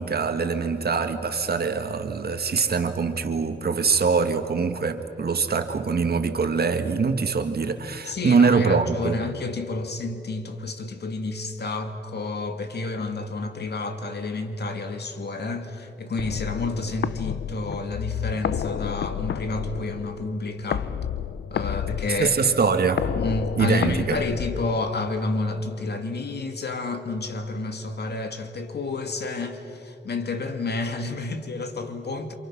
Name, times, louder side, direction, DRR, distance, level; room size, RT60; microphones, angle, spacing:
voice 1, 0.0-9.2 22.1-23.0 23.6-24.2, right 5 dB, 60° right, 1.9 m, -23 dB
voice 2, 8.0-20.9 21.5-22.3 23.1-32.3, left 3 dB, 70° left, 2.2 m, -30 dB
sound 1, 16.2-25.1, left 9 dB, 90° left, 0.6 m, -31 dB
28.0 x 27.5 x 6.2 m
cardioid pair, 80°, 18 cm